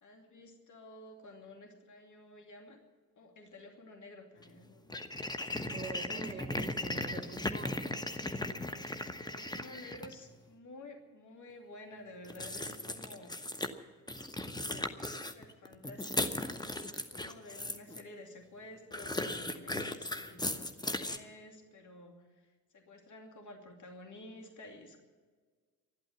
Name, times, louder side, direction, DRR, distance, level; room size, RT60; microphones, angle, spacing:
voice 1, 0.0-2.8 3.2-5.1 9.2-13.4 14.2-25.0, left 2 dB, 40° left, 4 dB, 2.6 m, -52 dB
sound 1, 4.4-4.5 4.9-10.1 12.2-13.7 14.1-18.0 18.9-21.2, left 1 dB, 10° left, 1.1 m, -37 dB
voice 2, 5.6-7.8, right 4 dB, 25° right, 2 dB, 2.7 m, -44 dB
12.5 x 12.0 x 9.5 m, 1.5 s
figure-of-eight pair, 45°, 43 cm